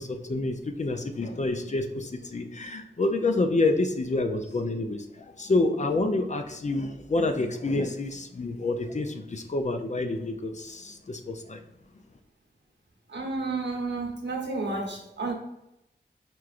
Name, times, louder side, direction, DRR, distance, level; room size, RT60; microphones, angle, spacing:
voice 1, 0.0-11.6, left 2 dB, 40° left, 5 dB, 0.4 m, -28 dB
voice 2, 13.1-15.3, right 3 dB, 70° right, 0 dB, 0.9 m, -31 dB
4.7 x 3.0 x 2.5 m, 0.89 s
wide cardioid pair, 55°, 19 cm